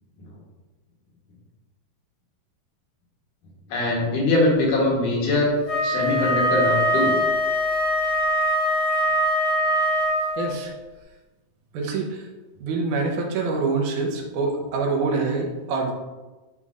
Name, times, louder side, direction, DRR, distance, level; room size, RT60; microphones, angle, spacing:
voice 1, 3.7-5.5 5.8-7.2, left 2 dB, 70° left, -3 dB, 2.6 m, -22 dB
Wind instrument woodwind instrument, 5.6-10.5, equal, 50° left, 2.8 m, -22 dB
voice 2, 10.4-10.7 11.7-12.3 12.6-15.9, right 4 dB, 70° right, 1 dB, 2.1 m, -25 dB
9.7 x 4.1 x 2.4 m, 1.2 s
omnidirectional pair, 4.0 m